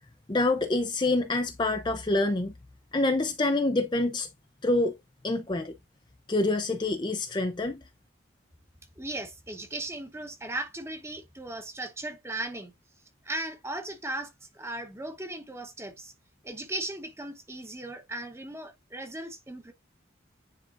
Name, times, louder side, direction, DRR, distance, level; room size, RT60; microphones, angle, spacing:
voice 1, 0.3-2.5 2.9-4.3 4.6-4.9 5.2-5.7 6.3-7.8, left 2 dB, 25° left, 0.5 m, -26 dB
voice 2, 9.0-12.7 13.2-16.1 16.4-19.7, right 2 dB, 15° right, 1.0 m, -37 dB
9.9 x 3.8 x 2.5 m
head